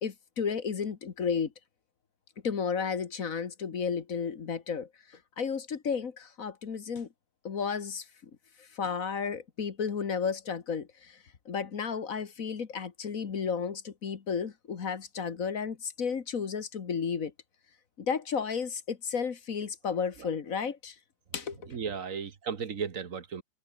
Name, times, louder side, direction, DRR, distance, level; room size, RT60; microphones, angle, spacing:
voice 1, 0.0-1.5 2.4-4.9 5.4-7.1 7.4-8.0 8.8-10.9 11.5-17.3 18.0-20.9 21.3-21.6, left 6 dB, 60° left, 1.9 m, -32 dB
voice 2, 21.7-23.4, right 6 dB, 60° right, 1.7 m, -35 dB
omnidirectional pair, 1.6 m